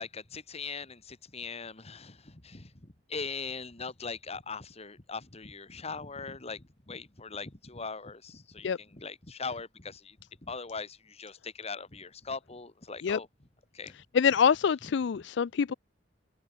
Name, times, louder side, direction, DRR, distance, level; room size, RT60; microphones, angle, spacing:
voice 1, 0.0-13.3 13.7-14.0, left 4 dB, 35° left, 1.9 m, -40 dB
voice 2, 14.1-15.7, left 7 dB, 70° left, 0.4 m, -25 dB
open air
head